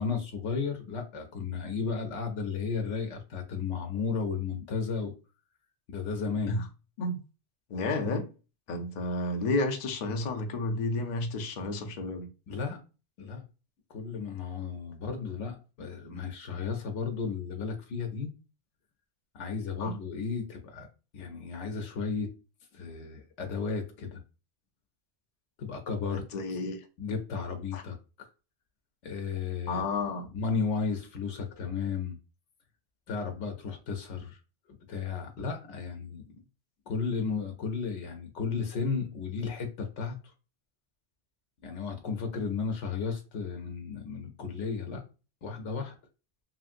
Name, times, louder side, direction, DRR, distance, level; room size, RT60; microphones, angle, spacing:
voice 1, 0.0-5.1 5.9-6.5 12.5-12.8 13.2-13.4 13.9-18.3 19.3-20.9 21.1-22.3 22.7-24.2 25.6-26.2 27.0-28.3 29.0-29.8 30.3-32.2 33.1-34.4 34.9-36.2 36.9-40.3 41.6-45.0 45.4-45.9, left 5 dB, 90° left, 0.9 m, -34 dB
voice 2, 7.7-8.2 8.7-12.3 19.8-19.9 26.1-26.9 27.7-27.8 29.7-30.3, left 2 dB, 50° left, 0.6 m, -31 dB
2.9 x 2.6 x 2.5 m
omnidirectional pair, 1.2 m